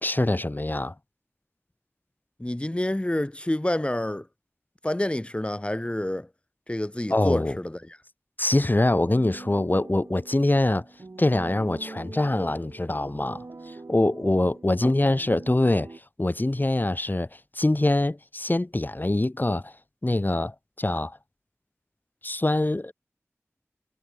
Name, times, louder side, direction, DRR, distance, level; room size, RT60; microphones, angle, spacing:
voice 1, 0.0-0.9 7.1-7.6 8.4-10.9 11.2-15.9 16.2-17.3 17.6-19.7 20.0-21.2 22.2-22.9, left 1 dB, 35° left, 2.0 m, -24 dB
voice 2, 2.4-4.3 4.8-6.3 6.7-8.0 14.8-14.9, left 1 dB, 20° left, 1.8 m, -28 dB
sound 1, 9.0-16.0, right 3 dB, 75° right, 5.4 m, -44 dB
wide cardioid pair, 40°, 5 cm